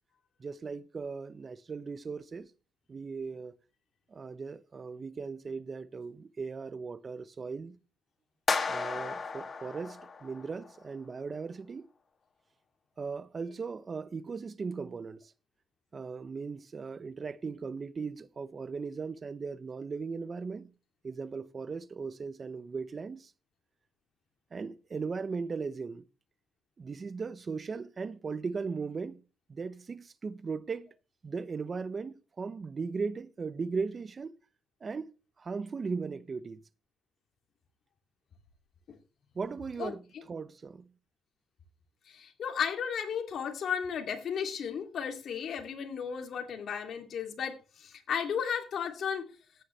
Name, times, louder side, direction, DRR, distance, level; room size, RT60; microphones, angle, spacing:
voice 1, 0.4-2.5 2.9-3.6 4.1-7.8 8.7-11.9 13.0-15.3 15.9-20.7 21.0-23.3 24.5-26.0 26.8-29.2 29.5-30.9 31.2-34.4 34.8-35.1 35.4-36.6 39.3-40.9, right 5 dB, 35° right, 0.7 m, -38 dB
sound 1, 8.5-10.7, left 4 dB, 40° left, 2.3 m, -34 dB
voice 2, 42.1-49.3, left 7 dB, 60° left, 2.6 m, -34 dB
14.5 x 9.6 x 3.2 m
cardioid pair, 90°, 0 cm